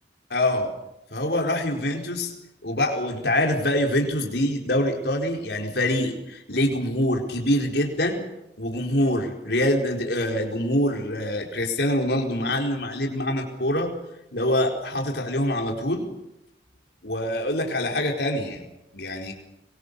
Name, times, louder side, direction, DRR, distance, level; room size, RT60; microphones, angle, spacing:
voice 1, 0.3-0.7 1.1-2.3 2.6-8.2 8.6-13.9 14.3-16.1 17.0-18.7 18.9-19.3, left 1 dB, 70° left, 1 dB, 4.5 m, -25 dB
26.0 x 23.0 x 6.9 m, 0.88 s
head